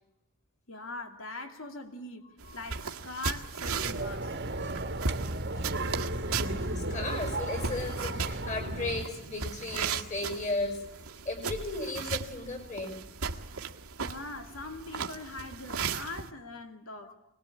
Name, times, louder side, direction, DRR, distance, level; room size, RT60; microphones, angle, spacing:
voice 1, 0.7-4.4 14.0-17.1, left 2 dB, 65° left, 2.8 m, -42 dB
sound 1, 2.4-16.3, right 5 dB, 85° right, 1.7 m, -37 dB
sound 2, 3.6-9.0, right 1 dB, 50° right, 1.5 m, -34 dB
voice 2, 4.7-5.1 5.5-5.7 6.3-13.0 17.0-17.1, left 2 dB, 35° left, 5.8 m, -36 dB
26.0 x 20.5 x 8.6 m
head